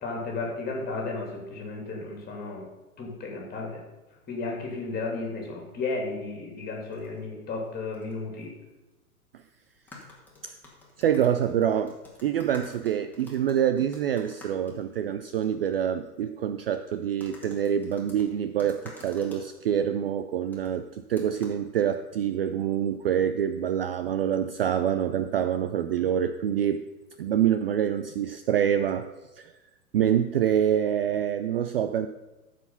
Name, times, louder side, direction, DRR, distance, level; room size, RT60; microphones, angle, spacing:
voice 1, 0.0-2.6 3.0-3.8 4.3-8.5, left 3 dB, 20° left, 0 dB, 2.8 m, -33 dB
sound 1, 6.9-7.2 7.9-8.1 8.4-8.5 9.7-15.5 15.7-15.8 17.2-19.5 20.5-20.8 21.2-21.6, left 2 dB, 5° left, 2.3 m, -50 dB
voice 2, 11.0-26.8 27.2-29.1 29.4-29.5 29.9-32.1, right 9 dB, 45° right, 10 dB, 0.4 m, -26 dB
14.0 x 5.0 x 5.6 m, 1.1 s
figure-of-eight pair, 110°, 45 cm